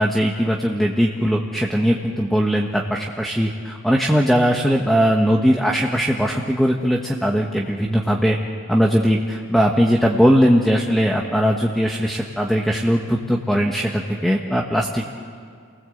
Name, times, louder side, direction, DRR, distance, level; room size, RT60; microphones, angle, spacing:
voice 1, 0.0-8.4 8.7-15.1, equal, ahead, 0 dB, 1.3 m, -19 dB
29.5 x 19.5 x 7.9 m, 2.3 s
head